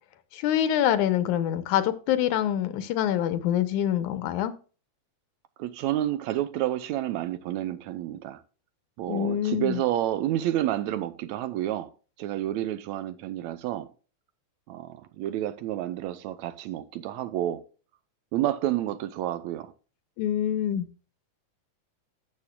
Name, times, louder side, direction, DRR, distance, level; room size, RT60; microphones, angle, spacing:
voice 1, 0.3-4.5 9.1-9.8 20.2-20.9, left 10 dB, 85° left, 2.3 m, -25 dB
voice 2, 5.6-8.4 9.0-11.9 12.2-13.9 14.7-17.6 18.3-19.7, right 13 dB, 75° right, 1.9 m, -29 dB
13.0 x 7.5 x 2.3 m
omnidirectional pair, 3.4 m